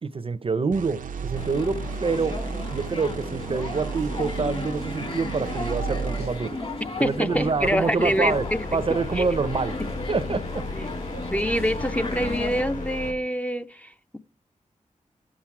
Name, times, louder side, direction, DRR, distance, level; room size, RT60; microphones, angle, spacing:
voice 1, 0.0-2.4 2.7-6.6 7.0-8.5 8.7-9.8 10.1-10.7, right 4 dB, 45° right, 0.6 m, -26 dB
sound 1, 0.7-7.2, right 6 dB, 85° right, 0.6 m, -34 dB
sound 2, 1.3-12.6, left 2 dB, 45° left, 1.8 m, -35 dB
voice 2, 7.0-8.8 9.1-9.3 10.7-10.8 11.3-14.2, equal, 10° left, 0.5 m, -26 dB
sound 3, 8.0-13.1, left 3 dB, 75° left, 3.8 m, -34 dB
11.0 x 7.3 x 4.7 m
wide cardioid pair, 95°, 13 cm